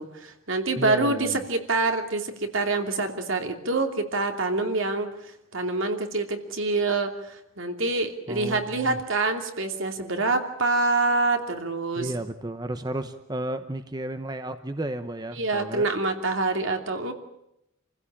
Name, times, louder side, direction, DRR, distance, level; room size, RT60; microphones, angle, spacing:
voice 1, 0.0-5.1 5.5-12.1 15.3-17.1, right 3 dB, 70° right, 5 dB, 2.8 m, -26 dB
voice 2, 0.8-1.4 8.3-9.0 12.0-15.9, right 1 dB, 20° right, 9 dB, 0.9 m, -33 dB
28.0 x 16.0 x 8.8 m, 0.83 s
head